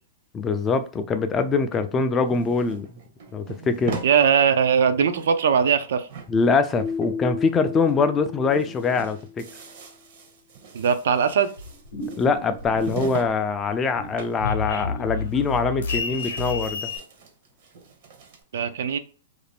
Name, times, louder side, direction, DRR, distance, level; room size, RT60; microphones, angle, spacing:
voice 1, 0.3-2.9 3.3-4.0 6.3-9.4 12.2-16.9, left 4 dB, 20° left, 0.3 m, -23 dB
sound 1, 1.7-4.2 4.6-4.7 4.9-5.8 6.1-7.5 7.8-8.0 8.3-13.4 13.6-14.4 14.7-14.8 15.2-15.8 16.1-18.4, right 5 dB, 55° right, 0.7 m, -40 dB
voice 2, 4.0-6.1 10.7-11.5 18.5-19.0, right 7 dB, 75° right, 0.3 m, -20 dB
Keyboard (musical), 6.8-9.6, left 5 dB, 40° left, 0.7 m, -33 dB
sound 2, 11.6-13.3 13.6-17.0, left 4 dB, 90° left, 0.7 m, -31 dB
2.5 x 2.1 x 3.3 m
hypercardioid pair, 145°, 0 cm